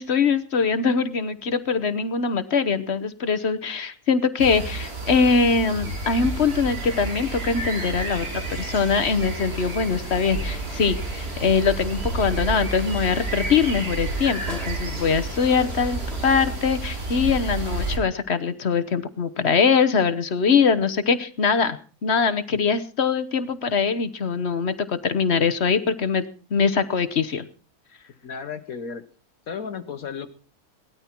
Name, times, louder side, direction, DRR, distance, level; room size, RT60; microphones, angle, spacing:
voice 1, 0.0-26.2 26.5-27.5, left 5 dB, 50° left, 12 dB, 1.2 m, -22 dB
sound 1, 4.4-18.0, right 2 dB, 70° right, 4.3 m, -30 dB
sound 2, 6.3-16.6, left 2 dB, ahead, 3.4 m, -43 dB
voice 2, 28.2-29.1 29.5-30.3, left 6 dB, 65° left, 9 dB, 1.4 m, -33 dB
19.0 x 13.0 x 4.5 m, 0.39 s
omnidirectional pair, 1.6 m